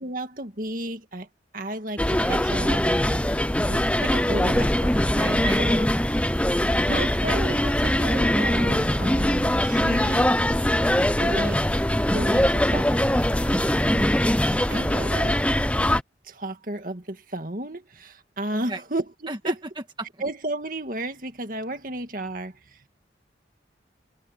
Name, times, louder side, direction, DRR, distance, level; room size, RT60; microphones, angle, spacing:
voice 1, 0.0-1.3 1.5-3.2 3.6-6.4 6.9-10.4 11.2-11.6 12.1-13.1 14.7-15.4 16.2-19.0 19.4-19.5 20.2-22.9, right 1 dB, 45° right, 2.1 m, -33 dB
sound 1, 2.0-16.0, left 1 dB, 5° left, 0.7 m, -22 dB
voice 2, 5.3-5.7 13.9-14.2 18.5-18.8 19.3-20.2, right 1 dB, 25° right, 1.7 m, -33 dB
head